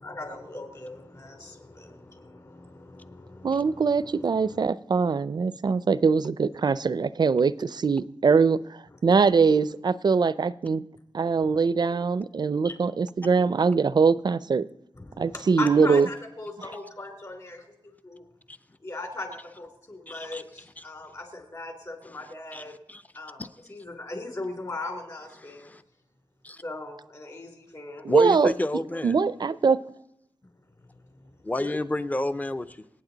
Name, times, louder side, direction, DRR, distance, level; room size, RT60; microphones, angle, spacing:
voice 1, 0.0-4.6 11.4-11.6 12.6-12.7 15.0-18.2 18.8-22.7 23.1-25.7 26.6-28.1 31.6-31.8, left 2 dB, 40° left, 2.8 m, -39 dB
voice 2, 3.4-10.8 11.1-14.7 15.2-16.1 28.0-28.5 29.0-29.8, right 5 dB, 50° right, 0.4 m, -22 dB
voice 3, 20.1-20.4 20.8-20.9 22.5-22.6 22.9-23.0 23.4-23.5 25.4-25.8 26.4-26.6 28.1-29.2 31.4-32.8, left 1 dB, 15° left, 0.6 m, -30 dB
26.0 x 9.0 x 4.0 m
wide cardioid pair, 125°, 9 cm